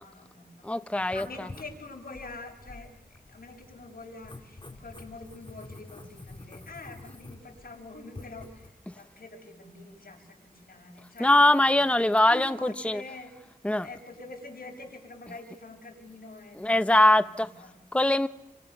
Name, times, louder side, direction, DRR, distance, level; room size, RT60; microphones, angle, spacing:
voice 1, 0.0-0.7 1.1-2.9 3.2-11.3 11.6-11.9 12.3-13.3 13.8-17.8, left 3 dB, 80° left, 7.0 m, -45 dB
voice 2, 0.6-1.5 8.9-9.0 11.2-13.0 13.6-13.9 16.5-17.5 17.9-18.3, left 1 dB, 10° left, 0.9 m, -22 dB
Writing, 1.0-8.7, left 2 dB, 35° left, 3.5 m, -48 dB
28.5 x 25.5 x 6.7 m
wide cardioid pair, 70°, 15 cm